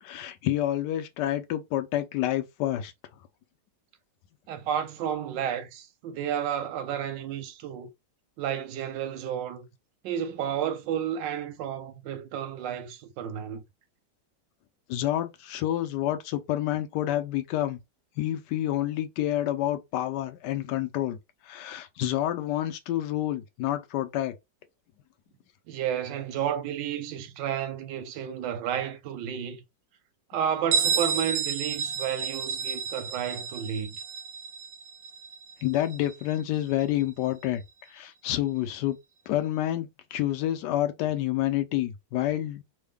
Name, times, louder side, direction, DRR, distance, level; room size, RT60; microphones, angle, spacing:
voice 1, 0.0-2.9 14.9-17.8 18.2-21.2 21.4-24.3 35.6-37.6 37.9-39.0 39.3-42.6, left 13 dB, 75° left, 1.2 m, -28 dB
voice 2, 4.5-7.9 8.4-9.7 10.0-13.6 25.7-29.6 30.3-33.9, right 9 dB, 85° right, 1.3 m, -31 dB
Bell, 30.7-36.2, right 6 dB, 70° right, 1.0 m, -31 dB
3.6 x 2.2 x 3.4 m
omnidirectional pair, 2.0 m